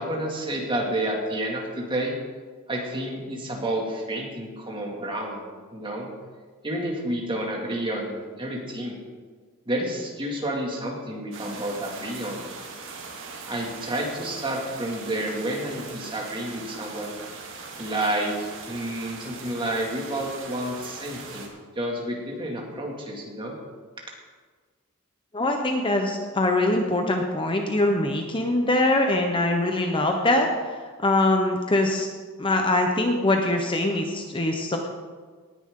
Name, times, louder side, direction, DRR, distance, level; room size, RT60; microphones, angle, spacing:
voice 1, 0.0-2.1 2.7-5.5 5.7-6.1 6.6-9.0 9.7-12.4 13.5-17.1 17.8-23.5, right 1 dB, 25° right, -1 dB, 2.4 m, -30 dB
sound 1, 11.3-21.5, right 4 dB, 60° right, 2.2 m, -40 dB
voice 2, 25.3-32.1 32.4-34.8, left 2 dB, 25° left, 3 dB, 0.9 m, -23 dB
18.5 x 10.0 x 3.8 m, 1.5 s
head